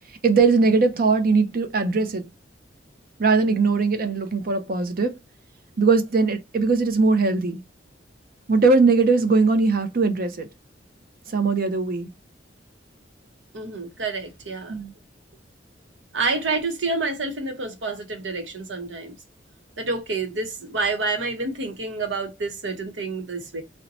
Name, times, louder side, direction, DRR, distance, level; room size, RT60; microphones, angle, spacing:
voice 1, 0.2-2.3 3.2-5.2 5.8-7.6 8.5-10.5 11.3-12.1 14.7-14.9, right 4 dB, 50° right, 0.6 m, -20 dB
voice 2, 13.5-14.8 16.1-19.2 19.8-23.6, right 3 dB, 85° right, 1.0 m, -28 dB
2.7 x 2.1 x 4.0 m
head